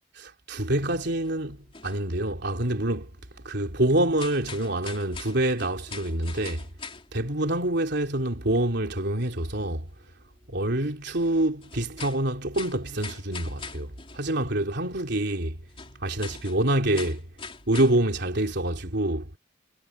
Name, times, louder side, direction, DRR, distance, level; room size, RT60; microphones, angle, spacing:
voice 1, 0.2-1.6 1.8-3.1 3.5-6.6 7.1-9.9 10.5-15.6 16.0-17.2 17.7-19.4, right 1 dB, 60° right, 3.5 m, -26 dB
sound 1, 1.2-1.3 1.7-2.9 3.4-3.6 4.0-7.6 7.9-8.0 8.6-8.7 8.9-9.0 9.6-9.7 10.1-10.2 10.9-11.0 11.5-14.5 14.8-14.9 15.6-18.4, left 5 dB, 30° left, 3.4 m, -43 dB
head